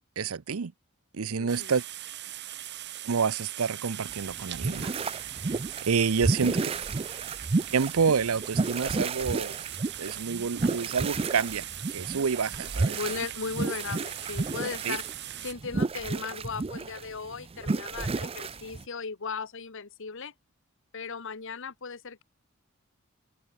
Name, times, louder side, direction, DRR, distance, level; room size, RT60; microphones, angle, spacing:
voice 1, 0.2-0.7 1.1-1.8 3.0-5.0 5.9-6.6 7.7-9.6 10.0-13.0 14.8-15.0, right 6 dB, 75° right, 0.6 m, -28 dB
voice 2, 1.4-1.7 6.2-6.8 12.9-15.0 15.4-20.3 20.9-22.2, left 5 dB, 65° left, 1.3 m, -37 dB
sound 1, 1.5-15.5, right 13 dB, 55° right, 2.0 m, -40 dB
sound 2, 4.1-18.8, right 3 dB, 25° right, 0.5 m, -32 dB
head